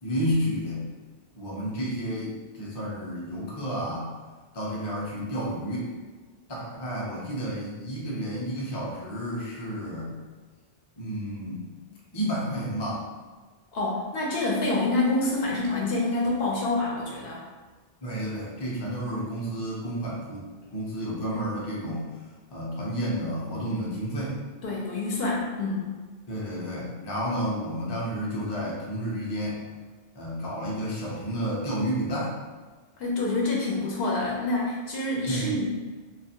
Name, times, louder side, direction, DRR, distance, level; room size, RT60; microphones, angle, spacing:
voice 1, 0.0-0.8 1.4-4.1 4.5-5.9 6.5-10.2 11.0-11.7 12.1-13.0 18.0-22.0 22.5-24.4 26.3-29.6 30.1-32.3 35.3-35.6, equal, 30° left, -5 dB, 0.5 m, -31 dB
voice 2, 13.7-17.4 24.6-25.9 33.0-35.8, left 2 dB, 70° left, -3 dB, 0.8 m, -27 dB
2.4 x 2.3 x 2.7 m, 1.4 s
omnidirectional pair, 1.1 m